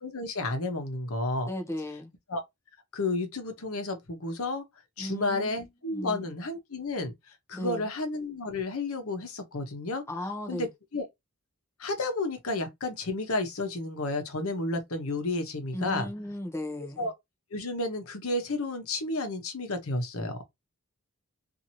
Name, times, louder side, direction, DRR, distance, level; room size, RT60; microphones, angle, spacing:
voice 1, 0.0-1.5 2.3-2.4 2.9-4.6 5.0-7.1 7.5-10.0 10.5-10.7 10.9-11.0 11.8-16.1 17.0-17.1 17.5-20.4, left 2 dB, 70° left, 0.9 m, -31 dB
voice 2, 1.5-2.1 5.0-6.3 7.5-7.9 10.1-10.7 15.7-17.1, left 1 dB, 10° left, 0.6 m, -36 dB
2.9 x 2.6 x 2.6 m
head